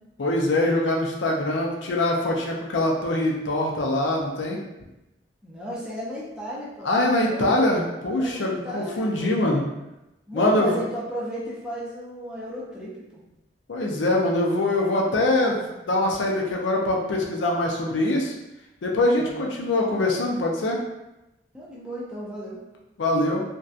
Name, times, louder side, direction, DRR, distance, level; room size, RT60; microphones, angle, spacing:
voice 1, 0.2-4.6 6.8-9.6 10.3-10.8 13.7-18.3 18.8-20.8 23.0-23.4, left 1 dB, 90° left, -1 dB, 0.5 m, -23 dB
voice 2, 5.4-7.8 8.1-9.3 10.3-13.2 19.1-19.5 21.5-22.6, right 1 dB, 5° right, -7 dB, 0.5 m, -35 dB
2.6 x 2.2 x 2.4 m, 0.95 s
head